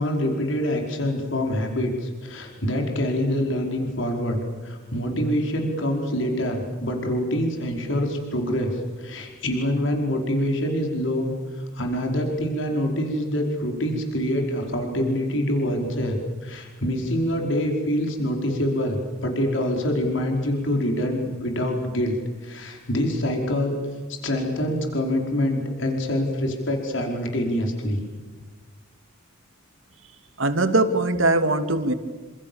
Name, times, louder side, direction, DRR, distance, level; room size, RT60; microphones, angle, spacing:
voice 1, 0.0-22.2 22.4-23.8 24.1-28.0, equal, 70° left, 2 dB, 5.1 m, -25 dB
voice 2, 30.4-31.9, right 2 dB, 75° right, 8 dB, 2.6 m, -21 dB
28.5 x 27.0 x 7.2 m, 1.4 s
head